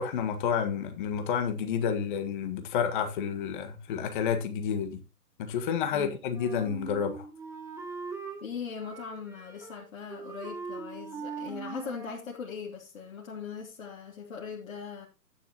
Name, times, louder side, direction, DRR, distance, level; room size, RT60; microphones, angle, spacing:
voice 1, 0.0-5.0 5.4-7.3, left 7 dB, 30° left, 1.6 m, -30 dB
Wind instrument woodwind instrument, 6.3-8.4 8.8-9.8 10.1-12.3, right 5 dB, 5° right, 1.3 m, -41 dB
voice 2, 8.4-15.1, left 6 dB, 55° left, 3.0 m, -40 dB
11.5 x 9.7 x 3.0 m
figure-of-eight pair, 135°, 48 cm